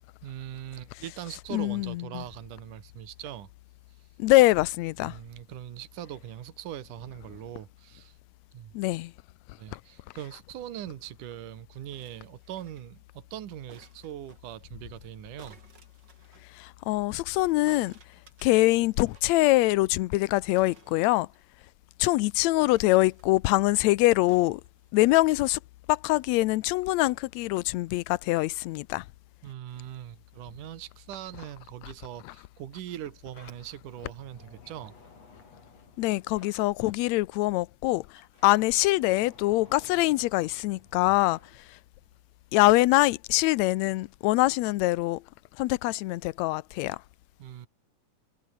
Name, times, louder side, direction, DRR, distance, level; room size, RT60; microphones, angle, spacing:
voice 1, 0.2-3.5 5.0-8.2 8.5-8.7 9.6-15.6 29.4-34.9 47.4-47.7, right 12 dB, 80° right, 3.0 m, -41 dB
voice 2, 1.5-2.2 4.2-5.1 8.7-9.1 16.6-17.9 18.4-21.3 22.0-24.6 24.9-25.6 25.9-29.0 36.0-38.0 38.4-41.4 42.5-45.2 45.6-47.0, left 19 dB, 80° left, 1.7 m, -24 dB
sound 1, 11.9-13.0 13.7-14.4 15.4-16.5 17.7-19.4 19.6-19.7 19.9-20.1 20.5-21.7 22.6-23.5 24.3-25.2 26.0-26.1, right 4 dB, 35° right, 3.9 m, -56 dB
Sliding door, 33.0-37.2 37.5-42.2, left 3 dB, 50° left, 7.8 m, -55 dB
omnidirectional pair, 3.7 m